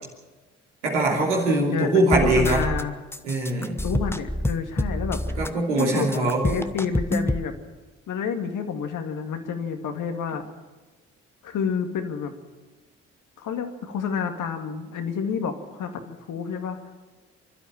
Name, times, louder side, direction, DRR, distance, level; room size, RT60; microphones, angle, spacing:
voice 1, 0.8-2.6 3.2-3.8 5.4-6.5, right 2 dB, 85° right, -2 dB, 3.0 m, -22 dB
voice 2, 1.7-3.0 3.8-5.2 5.8-7.6 8.1-10.4 11.4-12.3 13.4-16.8, left 6 dB, 60° left, 6 dB, 2.1 m, -29 dB
sound 1, 2.1-2.8 3.1-5.5 5.8-7.5, left 1 dB, 5° left, 1.1 m, -27 dB
26.0 x 12.5 x 8.8 m, 1.2 s
figure-of-eight pair, 40°, 35 cm